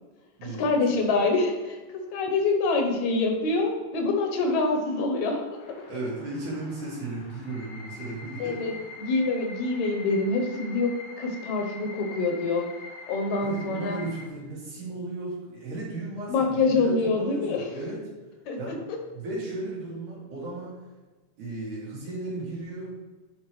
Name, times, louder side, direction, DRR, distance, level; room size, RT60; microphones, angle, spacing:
voice 1, 0.4-1.8 2.1-5.7 8.4-8.7 9.0-12.7 13.1-14.0 16.3-17.6 18.5-18.6, left 3 dB, 75° left, 3 dB, 2.1 m, -25 dB
sound 1, 5.6-14.3, left 3 dB, 90° left, 2.8 m, -44 dB
voice 2, 5.8-8.8 9.1-9.4 13.4-18.0 18.6-18.8 19.1-20.7 21.4-22.9, right 2 dB, 75° right, -6 dB, 3.5 m, -35 dB
9.9 x 4.6 x 3.1 m, 1.3 s
omnidirectional pair, 3.6 m